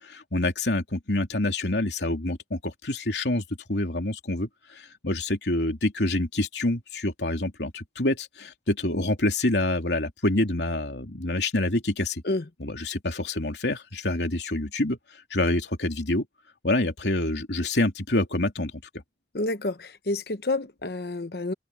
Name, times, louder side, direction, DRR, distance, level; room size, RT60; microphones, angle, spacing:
voice 1, 0.0-3.4 3.7-12.2 12.6-15.0 15.3-16.2 16.6-18.7, left 2 dB, 80° left, 3.1 m, -27 dB
voice 2, 19.3-21.5, left 2 dB, 60° left, 1.0 m, -29 dB
head